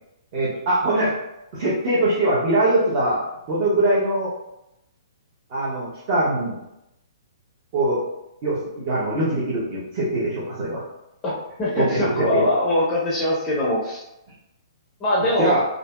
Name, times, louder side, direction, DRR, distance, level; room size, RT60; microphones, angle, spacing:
voice 1, 0.3-1.2 1.5-3.2 3.5-4.3 5.5-6.6 7.7-8.0 8.4-10.8 11.7-12.5 15.4-15.6, right 1 dB, 35° right, -7 dB, 0.7 m, -22 dB
voice 2, 11.6-14.0 15.0-15.5, left 1 dB, 15° left, -5 dB, 0.5 m, -22 dB
2.7 x 2.6 x 2.2 m, 0.86 s
hypercardioid pair, 160°, 3 cm